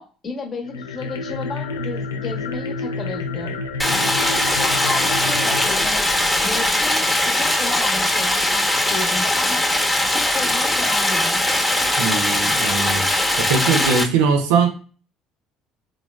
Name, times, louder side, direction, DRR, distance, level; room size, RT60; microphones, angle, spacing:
voice 1, 0.0-6.0 6.4-9.7 10.0-11.4, left 4 dB, 45° left, 2 dB, 0.9 m, -33 dB
sound 1, 0.6-6.9, left 3 dB, 90° left, 0.3 m, -30 dB
Stream, 3.8-14.0, left 1 dB, 10° left, 0.8 m, -20 dB
voice 2, 12.0-13.0 13.4-14.7, right 5 dB, 80° right, 5 dB, 0.5 m, -20 dB
3.4 x 2.2 x 2.2 m, 0.39 s
hypercardioid pair, 60°, 0 cm